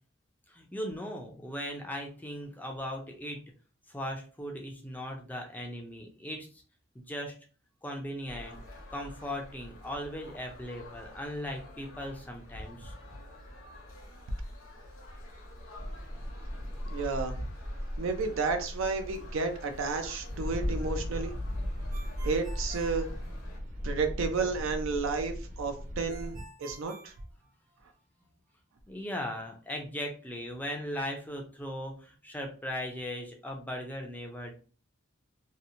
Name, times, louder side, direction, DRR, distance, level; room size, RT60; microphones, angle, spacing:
voice 1, 0.5-3.4 3.9-6.5 7.0-7.3 7.8-8.6 8.9-12.9 28.9-34.5, equal, 10° left, 2 dB, 0.4 m, -38 dB
sound 1, 8.3-23.6, left 1 dB, 75° left, 0.7 m, -49 dB
sound 2, 15.8-26.3, equal, 85° right, 0.9 m, -37 dB
voice 2, 16.9-17.5 18.0-21.3 22.2-23.1 23.8-27.1, right 4 dB, 65° right, 6 dB, 0.4 m, -32 dB
Ringtone, 21.9-23.8 26.1-28.0, right 2 dB, 40° right, 1.3 m, -51 dB
2.7 x 2.1 x 2.6 m, 0.39 s
head